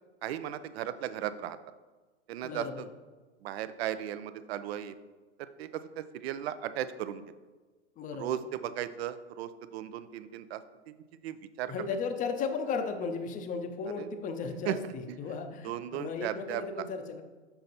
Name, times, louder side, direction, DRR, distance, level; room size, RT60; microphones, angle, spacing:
voice 1, 0.2-1.6 2.3-2.9 3.4-4.9 5.4-7.2 8.1-10.6 11.2-11.7 14.0-14.1 14.7-14.8 15.1-15.2 15.6-16.9, right 11 dB, 60° right, 13 dB, 0.5 m, -36 dB
voice 2, 2.4-2.8 8.0-8.4 11.7-14.8 15.2-17.2, left 5 dB, 25° left, 7 dB, 0.6 m, -35 dB
6.8 x 4.3 x 4.0 m, 1.3 s
hypercardioid pair, 105°, 35 cm